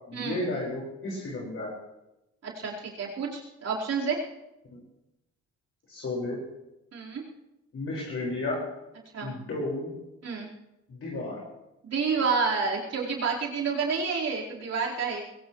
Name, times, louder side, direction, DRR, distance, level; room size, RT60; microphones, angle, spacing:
voice 1, 0.1-1.7 4.7-4.8 5.9-6.4 7.7-8.6 9.2-9.9 10.9-11.4, left 2 dB, 50° left, -4 dB, 5.4 m, -33 dB
voice 2, 2.4-4.2 6.9-7.2 9.1-9.3 10.2-10.5 11.8-15.2, right 5 dB, 55° right, -4 dB, 4.6 m, -29 dB
22.0 x 17.0 x 3.2 m, 0.93 s
cardioid pair, 90°, 30 cm